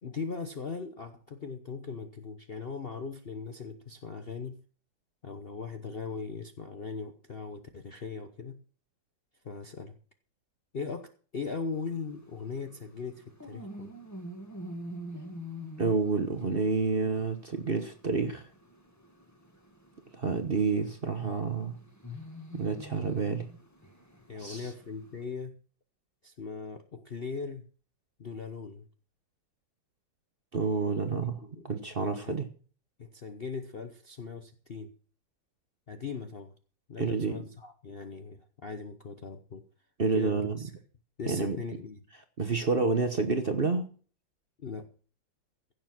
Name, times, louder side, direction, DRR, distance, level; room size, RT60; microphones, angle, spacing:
voice 1, 0.0-4.6 5.2-8.6 9.4-10.0 10.7-13.9 24.3-25.6 26.2-27.6 28.2-28.9 31.4-31.7 32.0-32.4 33.0-34.9 35.9-36.5 36.9-39.6 40.1-40.7 41.2-42.0 44.6-44.9, left 5 dB, 45° left, 7 dB, 0.8 m, -39 dB
sound 1, 11.7-25.2, equal, 10° left, 1.7 m, -47 dB
voice 2, 15.8-18.5 20.1-21.8 22.5-23.5 24.3-24.7 30.5-32.5 37.0-37.5 40.0-40.6 41.2-41.6 42.4-43.9, right 4 dB, 35° right, 7 dB, 1.0 m, -29 dB
15.5 x 7.1 x 5.9 m, 0.41 s
omnidirectional pair, 2.1 m